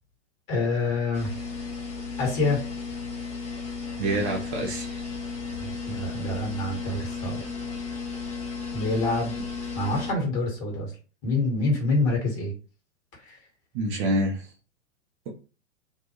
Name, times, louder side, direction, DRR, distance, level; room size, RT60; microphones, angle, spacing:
voice 1, 0.5-1.3 2.2-2.6 5.6-7.4 8.7-9.3 9.7-10.9 11.2-12.5 13.2-13.4, left 2 dB, 35° left, 1 dB, 1.5 m, -26 dB
sound 1, 1.1-10.1, left 5 dB, 20° left, 0.5 m, -34 dB
voice 2, 4.0-5.0 13.7-14.5, right 1 dB, 30° right, 0 dB, 0.4 m, -26 dB
2.6 x 2.1 x 3.0 m, 0.35 s
figure-of-eight pair, 105°, 36 cm